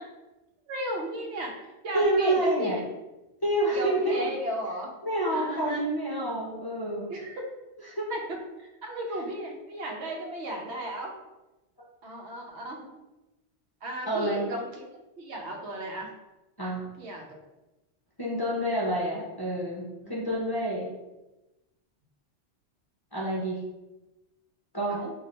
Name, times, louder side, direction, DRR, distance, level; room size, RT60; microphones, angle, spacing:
voice 1, 0.7-2.9 3.7-4.9 5.3-5.8 7.1-7.3 8.1-11.1 12.0-12.8 13.8-14.8 15.2-16.1 16.6-17.4 20.0-20.2 24.9-25.1, right 1 dB, 80° right, 1 dB, 1.0 m, -35 dB
voice 2, 1.9-2.8 3.4-4.3 5.0-7.1 8.0-8.1 14.1-14.5 16.6-16.8 18.2-20.9 23.1-23.6 24.7-25.0, right 1 dB, 25° left, -6 dB, 0.6 m, -28 dB
3.1 x 2.5 x 3.9 m, 1.0 s
omnidirectional pair, 1.1 m